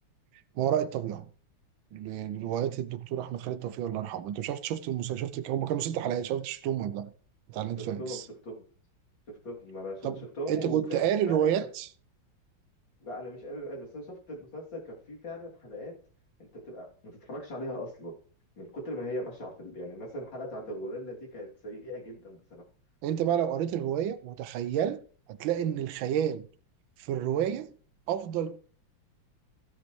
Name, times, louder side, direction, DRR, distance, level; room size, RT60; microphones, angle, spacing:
voice 1, 0.5-1.3 1.9-7.1 7.5-8.2 10.0-10.2 10.5-11.9 23.0-26.5 27.0-27.7 28.1-28.6, right 10 dB, 80° right, 1.5 m, -30 dB
voice 2, 7.8-8.7 9.3-11.5 13.0-16.0 16.4-18.2 18.6-22.7, equal, 70° left, 3.9 m, -39 dB
16.0 x 8.0 x 3.2 m
omnidirectional pair, 2.1 m